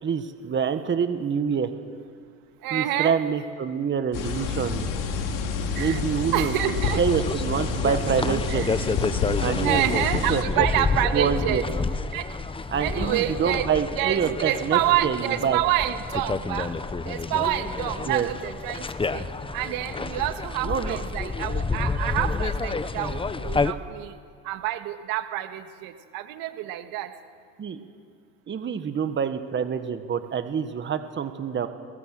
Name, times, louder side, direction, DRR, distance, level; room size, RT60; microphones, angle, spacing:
voice 1, 0.0-1.7 2.7-4.9 5.8-8.6 9.4-10.0 10.3-10.7 11.1-11.6 12.7-15.6 18.0-18.3 20.6-21.0 27.6-27.8 28.5-31.7, right 7 dB, 35° right, 9 dB, 1.5 m, -26 dB
voice 2, 2.6-3.2 5.8-6.0 6.3-7.0 8.5-8.7 9.6-11.6 12.1-12.2 12.8-13.7 14.0-16.7 17.1-18.9 19.1-19.2 19.5-24.2 24.4-27.1, right 13 dB, 75° right, 8 dB, 1.8 m, -27 dB
sound 1, 4.1-10.4, left 5 dB, 65° left, 3.1 m, -28 dB
sound 2, 6.8-23.7, left 4 dB, 15° left, 1.0 m, -29 dB
22.5 x 21.0 x 7.7 m, 2.4 s
supercardioid pair, 95°, 35 cm